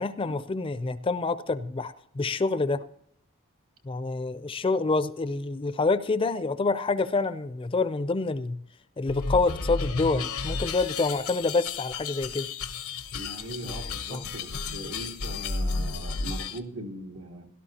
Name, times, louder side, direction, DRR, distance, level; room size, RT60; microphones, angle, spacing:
voice 1, 0.0-2.8 3.8-8.6 9.0-12.5 14.1-14.2, left 3 dB, 25° left, 14 dB, 0.4 m, -27 dB
sound 1, 9.1-16.6, left 4 dB, 85° left, 0.9 m, -33 dB
voice 2, 13.1-17.5, right 1 dB, 90° right, 3 dB, 1.6 m, -40 dB
17.0 x 12.0 x 2.8 m, 0.67 s
head